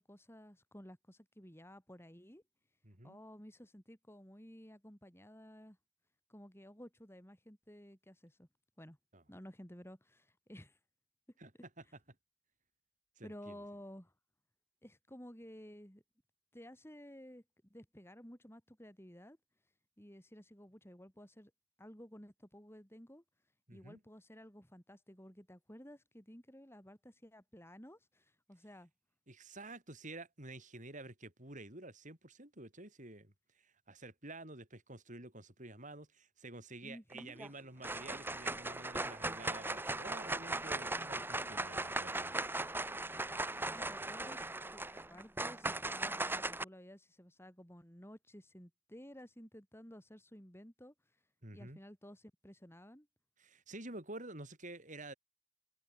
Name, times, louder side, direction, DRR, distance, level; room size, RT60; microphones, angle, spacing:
voice 1, 0.0-2.4 3.0-5.8 6.3-8.5 8.8-9.0 9.3-10.8 13.2-14.1 14.8-16.0 16.5-17.4 17.7-19.4 20.0-21.5 21.8-23.2 23.7-28.9 36.8-37.4 43.7-44.5 44.7-50.9 51.5-53.1, equal, 15° left, 7.2 m, -54 dB
voice 2, 2.8-3.2 9.1-9.2 11.4-11.5 13.2-13.5 23.7-24.0 29.3-42.3 51.4-51.8 53.4-55.1, right 2 dB, 40° right, 7.0 m, -50 dB
sound 1, 37.1-37.5 37.8-46.6, right 2 dB, 10° right, 2.7 m, -38 dB
head